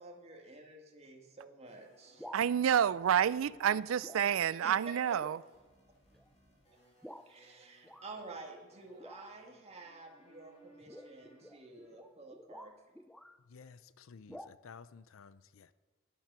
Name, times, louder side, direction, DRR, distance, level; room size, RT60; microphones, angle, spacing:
voice 1, 0.0-2.3 3.6-3.8 4.6-4.7 7.3-12.7, right 3 dB, 30° right, 2.0 m, -51 dB
sound 1, 1.6-11.9, right 1 dB, 35° left, 3.2 m, -65 dB
sound 2, 2.0-2.5 3.4-3.7 4.0-4.3 4.7-4.8 5.2-5.5 6.1-6.3 7.0-7.3 7.8-8.1 9.0-9.5 10.8-13.4 14.3-14.5, equal, ahead, 0.3 m, -51 dB
voice 2, 2.3-5.4, right 9 dB, 80° right, 0.4 m, -29 dB
voice 3, 13.4-15.7, left 5 dB, 85° left, 0.5 m, -54 dB
10.5 x 10.0 x 6.2 m
head